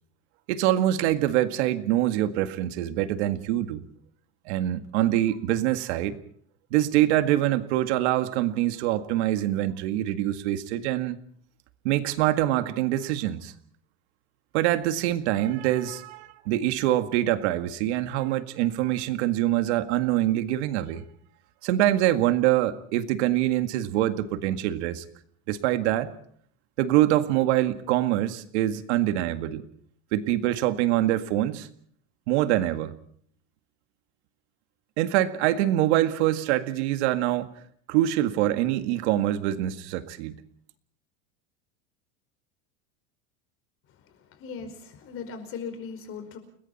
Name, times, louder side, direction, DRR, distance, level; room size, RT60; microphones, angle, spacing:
voice 1, 0.5-3.8 4.5-6.2 6.7-11.2 11.8-13.5 14.5-21.0 21.6-25.0 25.5-26.1 26.8-29.6 30.1-31.7 32.3-33.0 35.0-37.5 37.9-40.4, right 14 dB, 65° right, 10 dB, 2.0 m, -24 dB
voice 2, 44.4-46.4, left 6 dB, 35° left, 8 dB, 5.1 m, -38 dB
30.0 x 21.0 x 4.3 m, 0.62 s
supercardioid pair, 155°, 36 cm